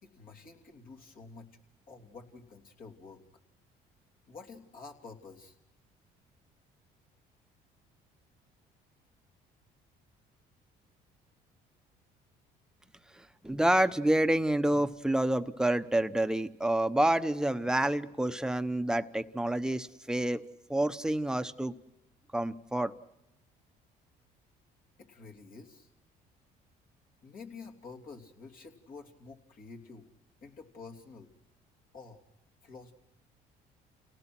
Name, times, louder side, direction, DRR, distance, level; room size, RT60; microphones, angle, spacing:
voice 1, 0.0-1.6 1.9-3.2 4.3-5.6 25.0-25.9 27.2-30.1 30.4-31.3 31.9-32.3 32.6-32.9, left 4 dB, 50° left, 0 dB, 3.1 m, -49 dB
voice 2, 13.1-20.4 20.7-21.7 22.3-22.9, right 1 dB, 5° right, 10 dB, 1.0 m, -28 dB
29.0 x 18.0 x 6.1 m, 0.90 s
supercardioid pair, 90°, 18 cm